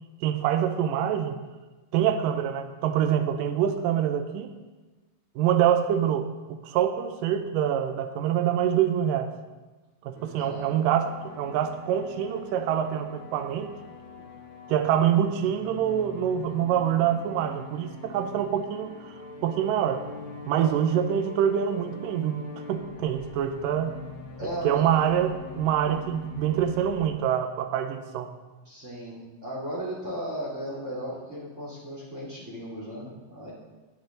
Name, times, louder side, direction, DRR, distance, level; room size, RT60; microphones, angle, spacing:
voice 1, 0.2-1.4 1.9-4.5 5.4-9.3 10.0-13.7 14.7-19.2 19.4-20.0 20.5-22.4 22.7-24.0 24.6-28.3, right 9 dB, 75° right, 7 dB, 2.4 m, -25 dB
sound 1, 10.1-27.1, left 3 dB, 75° left, 0.6 m, -44 dB
voice 2, 10.4-10.7 20.5-20.7 24.4-24.9 28.6-33.5, equal, 20° right, -5 dB, 2.7 m, -36 dB
17.0 x 9.3 x 3.9 m, 1.2 s
omnidirectional pair, 4.1 m